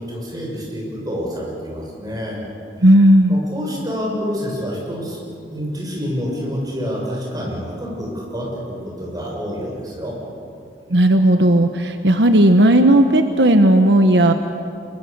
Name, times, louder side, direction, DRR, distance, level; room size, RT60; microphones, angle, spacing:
voice 1, 0.0-2.4 3.3-10.2, equal, 20° right, -3 dB, 6.8 m, -28 dB
voice 2, 2.8-3.4 10.9-14.3, right 1 dB, 85° right, 7 dB, 1.2 m, -13 dB
26.0 x 23.0 x 6.8 m, 2.4 s
head